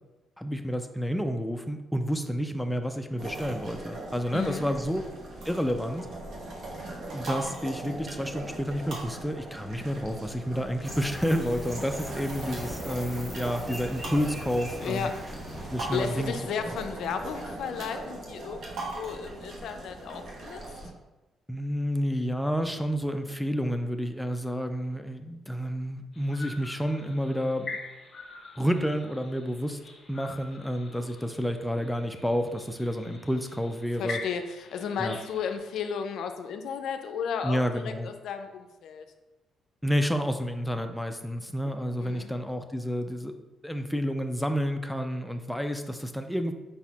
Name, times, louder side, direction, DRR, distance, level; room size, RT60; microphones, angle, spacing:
voice 1, 0.4-5.0 5.5-6.1 7.1-15.1 15.7-16.3 21.5-27.8 28.6-29.8 30.1-34.2 35.0-35.2 37.4-38.1 39.8-43.3 43.6-46.5, equal, 5° left, 6 dB, 0.4 m, -30 dB
sound 1, 3.2-20.9, right 2 dB, 65° right, 1.0 m, -39 dB
voice 2, 4.3-4.6 14.8-15.2 15.9-20.6 34.0-39.0 42.0-42.3, left 6 dB, 75° left, 7 dB, 0.4 m, -34 dB
sound 2, 10.8-16.3, equal, 15° right, 1.4 m, -41 dB
sound 3, 26.1-35.6, left 3 dB, 45° left, 0.8 m, -45 dB
5.1 x 4.1 x 2.3 m, 1.0 s
cardioid pair, 90°, 0 cm